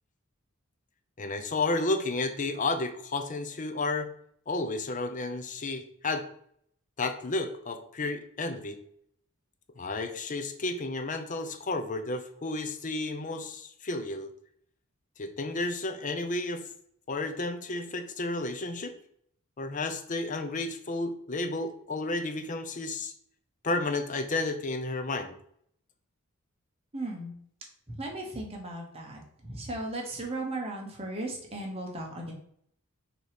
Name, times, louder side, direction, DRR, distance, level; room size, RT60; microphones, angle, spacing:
voice 1, 1.2-4.1 4.5-6.2 7.0-8.8 9.8-14.3 15.2-16.7 17.1-18.9 19.6-23.1 23.6-25.3, left 2 dB, 35° left, 8 dB, 0.6 m, -32 dB
voice 2, 26.9-27.3 27.9-32.3, right 2 dB, 30° right, 0 dB, 1.3 m, -36 dB
6.5 x 3.0 x 5.1 m, 0.66 s
head